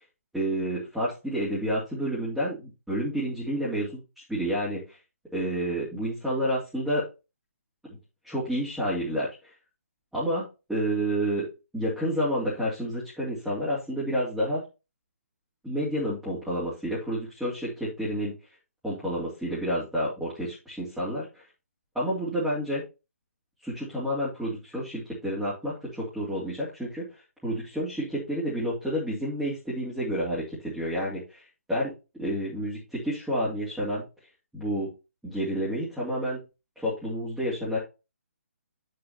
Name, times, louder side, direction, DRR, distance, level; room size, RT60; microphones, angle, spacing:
voice 1, 0.3-3.9 4.3-5.0 5.3-7.1 8.2-9.3 10.1-14.6 15.6-18.3 18.8-21.4 21.9-22.8 23.6-31.4 31.7-34.0 34.5-34.9 35.2-36.4 36.8-37.8, equal, ahead, -9 dB, 2.7 m, -29 dB
9.7 x 6.7 x 2.9 m, 0.28 s
figure-of-eight pair, 140°, 8 cm